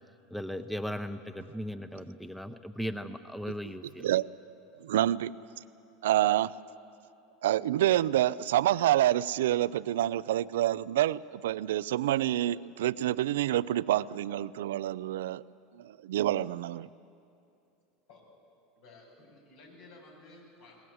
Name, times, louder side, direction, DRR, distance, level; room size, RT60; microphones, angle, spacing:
voice 1, 0.3-4.1, equal, ahead, 10 dB, 0.8 m, -37 dB
voice 2, 4.8-5.3 6.0-6.5 7.4-15.4 16.0-16.9, right 13 dB, 80° right, 18 dB, 0.4 m, -27 dB
voice 3, 18.8-20.8, left 2 dB, 75° left, -1 dB, 7.6 m, -54 dB
22.0 x 20.0 x 7.9 m, 2.6 s
hypercardioid pair, 95°, 0 cm